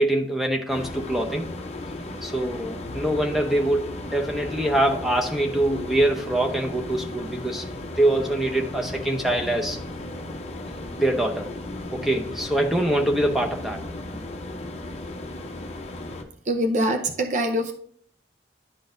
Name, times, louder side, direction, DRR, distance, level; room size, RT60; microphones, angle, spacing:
voice 1, 0.0-1.5 2.2-7.6 8.0-9.8 10.9-11.5 11.9-13.8, right 1 dB, ahead, 1 dB, 0.7 m, -24 dB
sound 1, 0.7-16.2, left 1 dB, 35° left, 0.7 m, -35 dB
voice 2, 16.4-17.7, right 1 dB, 40° right, 5 dB, 0.5 m, -24 dB
11.0 x 3.8 x 2.6 m, 0.62 s
head